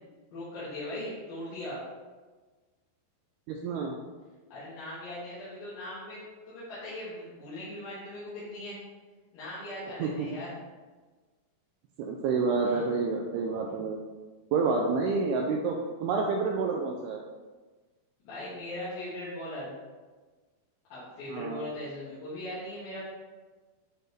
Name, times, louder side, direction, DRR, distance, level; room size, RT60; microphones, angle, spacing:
voice 1, 0.3-1.9 4.5-8.8 9.3-10.6 12.6-12.9 13.6-13.9 15.0-15.2 18.2-19.7 20.9-23.0, left 1 dB, 60° left, -12 dB, 3.4 m, -39 dB
voice 2, 3.5-4.0 10.0-10.4 12.0-14.0 14.5-17.2 21.3-21.6, right 4 dB, 90° right, 1 dB, 2.3 m, -29 dB
10.0 x 4.4 x 3.3 m, 1.3 s
omnidirectional pair, 5.2 m